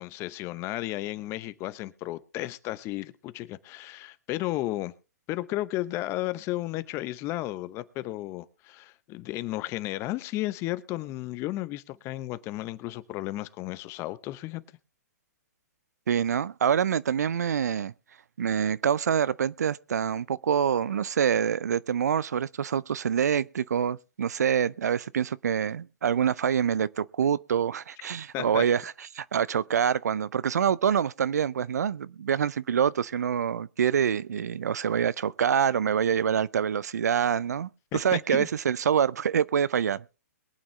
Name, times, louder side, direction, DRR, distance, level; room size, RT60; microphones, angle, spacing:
voice 1, 0.0-4.9 5.3-14.6 28.3-28.6 37.9-38.5, left 16 dB, 30° left, 0.9 m, -33 dB
voice 2, 16.1-17.9 18.4-40.0, right 8 dB, 75° right, 0.5 m, -26 dB
22.5 x 8.7 x 3.2 m
hypercardioid pair, 130°, 9 cm